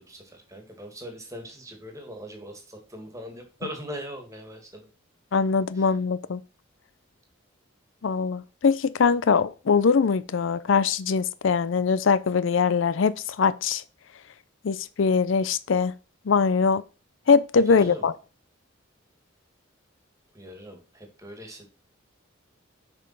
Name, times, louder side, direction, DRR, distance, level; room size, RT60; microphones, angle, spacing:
voice 1, 0.0-4.9 5.7-5.9 17.7-18.1 20.3-21.7, equal, 15° right, 2.0 m, -41 dB
voice 2, 5.3-6.4 8.0-13.8 14.6-15.9 16.3-16.8 17.3-18.1, left 5 dB, 65° left, 0.5 m, -22 dB
7.1 x 5.3 x 5.7 m
head